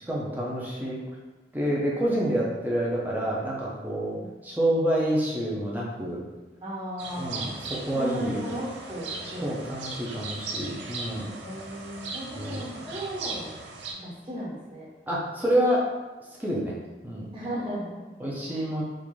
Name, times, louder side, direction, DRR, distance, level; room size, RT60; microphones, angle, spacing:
voice 1, 0.1-1.0 1.5-4.2 4.4-6.2 7.2-8.4 9.4-11.4 12.3-12.6 15.1-15.9 16.4-16.8 17.0-17.3 18.2-18.8, right 1 dB, 10° right, -5 dB, 0.6 m, -28 dB
voice 2, 6.6-7.6 7.9-9.6 11.4-13.5 13.9-14.9 17.3-18.0 18.4-18.6, equal, 25° right, -8 dB, 1.3 m, -36 dB
sound 1, 7.0-13.9, right 3 dB, 85° right, 0.5 m, -38 dB
3.7 x 2.5 x 3.1 m, 1.2 s
head